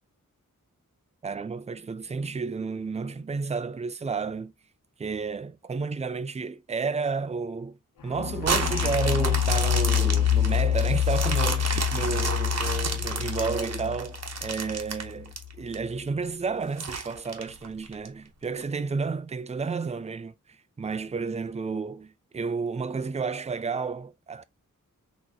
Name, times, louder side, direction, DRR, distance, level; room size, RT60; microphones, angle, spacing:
voice 1, 1.2-4.5 5.0-7.8 8.0-24.4, right 4 dB, 20° right, 0.4 m, -31 dB
sound 1, 8.1-15.8, left 10 dB, 90° left, 0.5 m, -27 dB
sound 2, 8.4-15.7 16.2-16.3 16.8-18.1 18.6-18.7, right 4 dB, 50° right, 0.9 m, -31 dB
4.0 x 3.0 x 2.7 m
wide cardioid pair, 75°, 32 cm